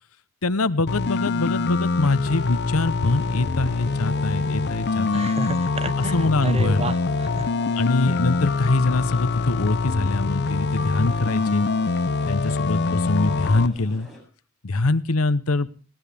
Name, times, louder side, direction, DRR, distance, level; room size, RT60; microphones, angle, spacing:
voice 1, 0.4-5.3 6.0-6.8 7.7-11.7 12.3-14.1 14.6-15.7, left 2 dB, 85° left, 15 dB, 0.9 m, -23 dB
sound 1, 0.9-13.7, left 3 dB, 55° left, 0.7 m, -24 dB
sound 2, 3.0-14.2, equal, ahead, 7.7 m, -45 dB
voice 2, 5.1-6.1 6.4-7.5, right 2 dB, 30° right, 13 dB, 1.0 m, -30 dB
20.5 x 18.0 x 3.5 m, 0.37 s
head